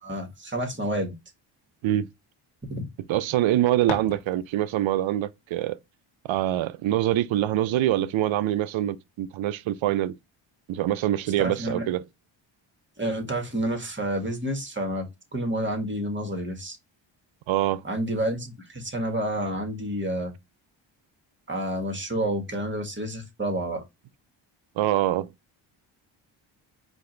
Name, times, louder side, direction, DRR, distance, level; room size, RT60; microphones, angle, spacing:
voice 1, 0.0-1.1 2.7-2.8 11.4-11.9 13.0-15.1 15.3-16.8 17.8-20.3 21.5-23.8, right 1 dB, 25° right, 1.8 m, -29 dB
voice 2, 3.1-5.8 6.3-10.2 10.7-12.0 17.5-17.8 24.8-25.3, right 13 dB, 70° right, 0.6 m, -24 dB
sound 1, 3.8-4.8, left 7 dB, 70° left, 1.3 m, -38 dB
4.7 x 2.6 x 3.2 m
supercardioid pair, 55°, 49 cm